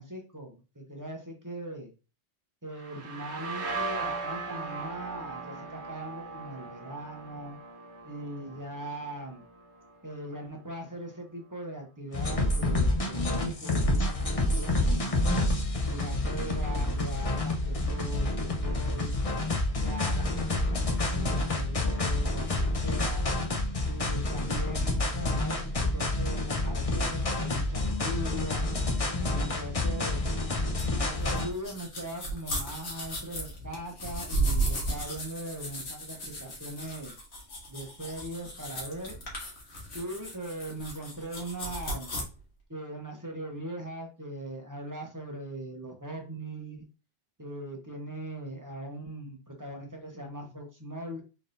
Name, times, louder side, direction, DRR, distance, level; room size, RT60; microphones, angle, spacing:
voice 1, 0.0-1.9 2.6-7.6 8.0-9.4 10.0-15.3 15.9-19.1 19.8-23.3 23.8-28.7 29.3-30.3 30.9-37.1 37.7-39.2 39.9-42.1 42.7-46.8 47.4-51.2, right 1 dB, 20° right, 1 dB, 0.8 m, -40 dB
sound 1, 2.7-10.3, right 3 dB, 75° right, 1.2 m, -39 dB
sound 2, 12.1-31.5, left 2 dB, 35° left, 0.8 m, -28 dB
sound 3, 30.8-42.2, right 1 dB, 70° left, 1.6 m, -35 dB
4.0 x 3.7 x 2.6 m, 0.32 s
omnidirectional pair, 1.2 m